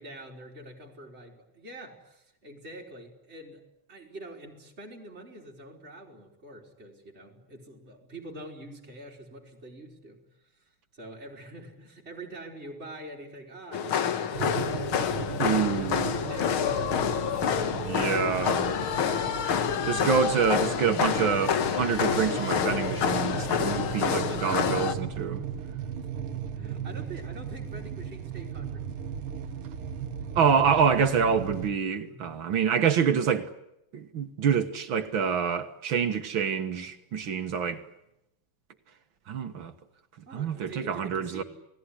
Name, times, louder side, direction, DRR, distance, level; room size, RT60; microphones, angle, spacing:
voice 1, 0.0-3.6 3.9-10.2 10.5-19.2 19.6-19.8 24.1-25.2 26.2-29.1 29.6-29.8 32.0-32.4 40.3-41.4, right 2 dB, 30° right, 4.1 m, -45 dB
sound 1, 13.7-24.9, left 8 dB, 80° left, 2.2 m, -28 dB
sound 2, 14.3-31.7, right 8 dB, 85° right, 2.1 m, -37 dB
voice 2, 15.4-16.2 17.7-18.7 19.9-25.4 30.4-33.5 33.9-37.8 39.3-39.7 40.3-41.4, right 6 dB, 65° right, 2.1 m, -26 dB
29.0 x 19.5 x 9.9 m
omnidirectional pair, 2.3 m